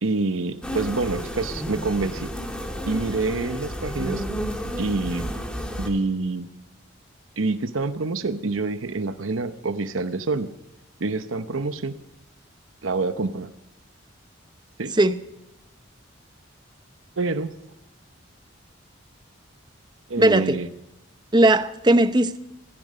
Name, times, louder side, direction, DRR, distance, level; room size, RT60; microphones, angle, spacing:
voice 1, 0.0-2.3 2.9-4.2 4.8-5.3 5.8-6.5 7.4-10.5 11.0-11.9 12.8-13.5 14.8-15.0 17.2-17.5 20.1-20.7, right 3 dB, 85° right, 10 dB, 0.9 m, -26 dB
sound 1, 0.6-5.9, equal, 5° left, 2.1 m, -31 dB
voice 2, 20.2-20.6 21.3-22.4, right 1 dB, 20° right, 11 dB, 0.8 m, -18 dB
15.5 x 15.0 x 5.4 m, 0.92 s
head